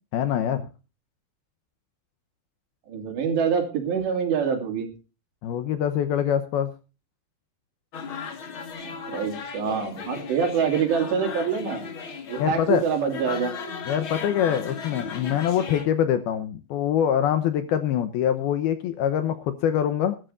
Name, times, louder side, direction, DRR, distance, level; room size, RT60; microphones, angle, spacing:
voice 1, 0.1-0.7 5.4-6.7 12.4-12.8 13.9-20.2, left 9 dB, 75° left, 10 dB, 2.5 m, -24 dB
voice 2, 2.9-4.9 8.8-11.9 12.3-13.5, right 6 dB, 70° right, 4 dB, 4.9 m, -25 dB
sound 1, 7.9-15.8, left 5 dB, 55° left, 1.4 m, -36 dB
20.5 x 12.5 x 2.6 m, 0.32 s
omnidirectional pair, 5.2 m